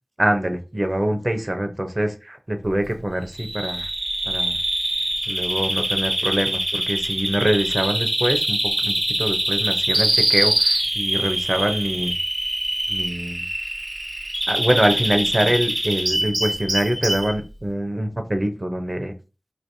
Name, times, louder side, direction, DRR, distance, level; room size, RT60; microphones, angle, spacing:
voice 1, 0.2-3.9 4.2-4.6 5.3-12.1 12.9-13.5 14.5-19.1, right 1 dB, 40° right, 6 dB, 0.7 m, -24 dB
Bird vocalization bird call bird song, 3.3-17.3, right 1 dB, 70° right, 1.2 m, -24 dB
4.0 x 3.1 x 2.6 m, 0.31 s
wide cardioid pair, 45°, 0 cm